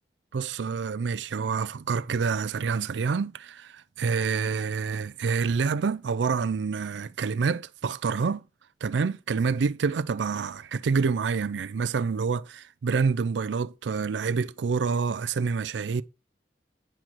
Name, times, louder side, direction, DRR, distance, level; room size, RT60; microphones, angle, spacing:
voice 1, 0.3-8.4 8.8-16.0, right 5 dB, 85° right, 0.4 m, -27 dB
9.7 x 4.4 x 6.1 m
head